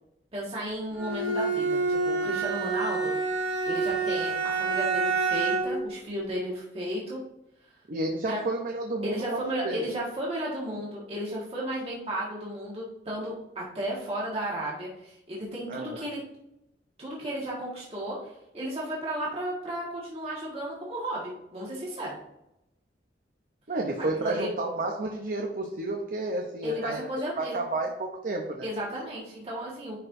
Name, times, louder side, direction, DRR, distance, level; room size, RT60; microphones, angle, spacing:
voice 1, 0.3-3.1 3.7-7.2 8.3-8.4 9.0-16.2 17.0-22.2 24.0-24.5 26.6-27.6 28.6-30.0, equal, 35° right, -6 dB, 1.6 m, -34 dB
Bowed string instrument, 1.0-5.8, right 4 dB, 75° right, 1.1 m, -27 dB
voice 2, 7.9-9.8 15.7-16.1 23.7-27.0 27.4-28.7, right 2 dB, 50° right, 2 dB, 0.7 m, -31 dB
10.5 x 4.4 x 2.6 m, 0.84 s
head